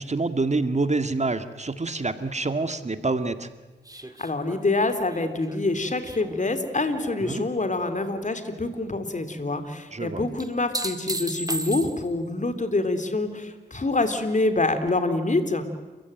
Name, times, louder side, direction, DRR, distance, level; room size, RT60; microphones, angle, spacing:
voice 1, 0.0-3.5 7.2-7.4 9.9-10.2, right 3 dB, 40° right, 10 dB, 2.1 m, -27 dB
sound 1, 3.9-7.3 7.7-8.3 10.4-12.3 14.9-15.0, right 1 dB, 20° right, 2.2 m, -35 dB
voice 2, 4.2-15.6, left 2 dB, 45° left, 9 dB, 3.5 m, -26 dB
29.0 x 15.5 x 9.2 m, 1.2 s
cardioid pair, 40°, 18 cm